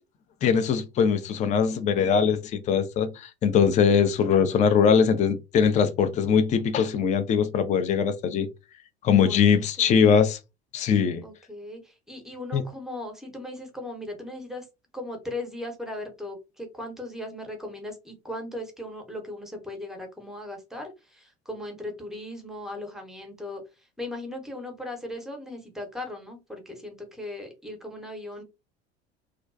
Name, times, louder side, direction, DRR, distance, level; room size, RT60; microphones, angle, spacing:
voice 1, 0.4-8.5 9.0-10.4 10.7-11.2 12.5-12.6, left 7 dB, 25° left, 0.4 m, -21 dB
voice 2, 9.2-9.9 11.2-14.7 14.9-28.4, left 1 dB, ahead, 0.8 m, -38 dB
2.3 x 2.2 x 2.4 m
figure-of-eight pair, 65°, 33 cm